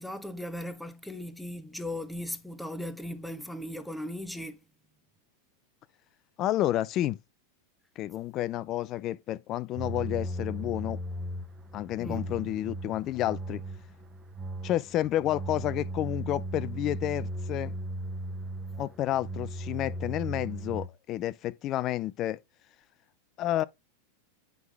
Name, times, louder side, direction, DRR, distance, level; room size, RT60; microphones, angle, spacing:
voice 1, 0.0-4.6 12.0-12.3, left 1 dB, 5° left, 1.1 m, -37 dB
voice 2, 6.4-7.2 8.0-11.0 11.7-13.6 14.6-17.7 18.8-22.4 23.4-23.6, left 13 dB, 40° left, 0.5 m, -30 dB
sound 1, 9.8-20.9, right 1 dB, 25° right, 1.1 m, -37 dB
9.5 x 3.7 x 3.5 m
hypercardioid pair, 100°, 0 cm